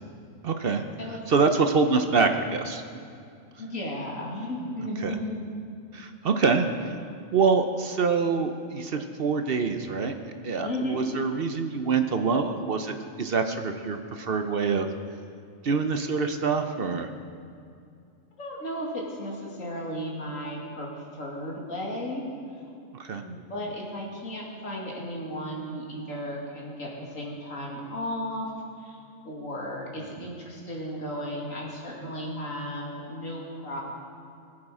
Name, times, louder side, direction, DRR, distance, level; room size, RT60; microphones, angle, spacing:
voice 1, 0.4-0.8 1.3-2.8 5.0-5.1 5.9-7.0 7.3-10.1 10.4-14.9 15.6-17.1 23.0-23.2 30.2-30.3, right 4 dB, 55° right, 7 dB, 0.8 m, -25 dB
voice 2, 3.6-5.4 10.6-11.1 18.4-22.2 23.2-28.5 28.8-29.0 29.2-33.8, equal, 85° left, -3 dB, 2.8 m, -34 dB
20.5 x 8.8 x 4.9 m, 2.4 s
omnidirectional pair, 1.3 m